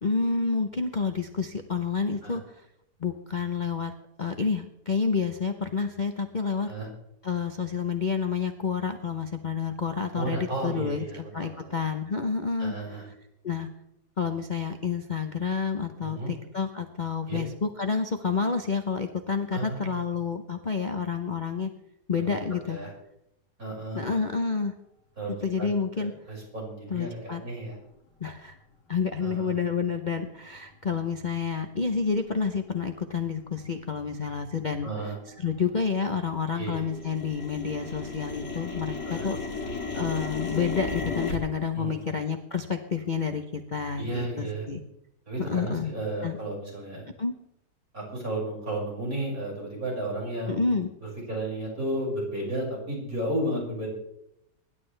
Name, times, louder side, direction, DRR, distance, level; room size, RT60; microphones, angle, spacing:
voice 1, 0.0-2.6 3.0-3.9 4.2-6.7 7.2-12.7 13.4-13.7 14.2-21.7 22.1-22.8 23.9-24.7 25.4-26.1 26.9-27.4 28.2-28.6 28.9-34.9 35.4-39.4 39.9-44.8 45.5-45.9 46.2-46.4 47.2-47.3 50.5-50.9, left 5 dB, 35° left, 5 dB, 0.8 m, -29 dB
voice 2, 10.1-11.8 12.6-13.1 16.0-16.3 17.3-17.4 19.5-20.0 22.2-22.3 22.7-22.9 23.6-24.2 25.2-25.7 26.0-27.8 29.2-29.5 34.8-35.2 36.6-36.8 39.1-39.3 41.7-42.0 44.0-44.7 45.3-47.1 47.9-53.9, right 1 dB, 55° right, -3 dB, 6.6 m, -33 dB
sound 1, 30.5-30.6 31.2-31.4 32.0-32.3 32.7-32.8 33.1-33.6 33.9-36.2 36.5-41.4, left 3 dB, 80° left, 2.9 m, -35 dB
24.5 x 11.5 x 3.3 m, 0.81 s
omnidirectional pair, 1.8 m